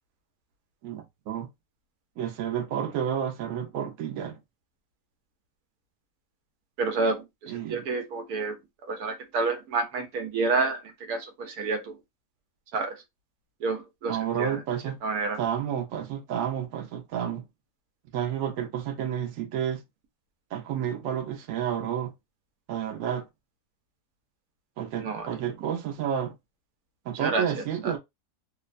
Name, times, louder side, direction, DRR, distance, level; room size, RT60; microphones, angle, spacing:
voice 1, 0.8-1.5 2.2-4.4 7.5-7.8 14.1-15.0 15.4-17.4 18.1-19.8 20.5-22.1 22.7-23.2 24.8-26.3 27.1-28.0, right 9 dB, 70° right, 1.0 m, -30 dB
voice 2, 6.8-8.6 8.9-10.8 11.1-12.0 12.7-13.0 13.6-14.6 15.0-15.4 25.0-25.3 27.2-27.9, right 3 dB, 90° right, 1.2 m, -29 dB
3.1 x 2.1 x 2.4 m
omnidirectional pair, 1.5 m